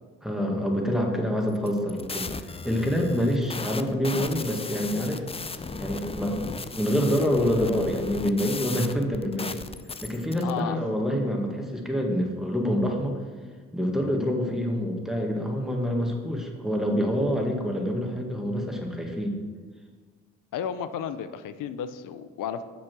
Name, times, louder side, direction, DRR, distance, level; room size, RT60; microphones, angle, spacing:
voice 1, 0.2-5.2 5.8-9.6 10.0-13.2 13.7-19.4, equal, ahead, 1 dB, 1.9 m, -26 dB
sound 1, 1.5-10.5, left 4 dB, 20° left, 0.5 m, -36 dB
voice 2, 10.4-10.8 20.5-22.6, left 8 dB, 70° left, 11 dB, 0.6 m, -33 dB
7.0 x 6.2 x 6.1 m, 1.5 s
supercardioid pair, 60°, 33 cm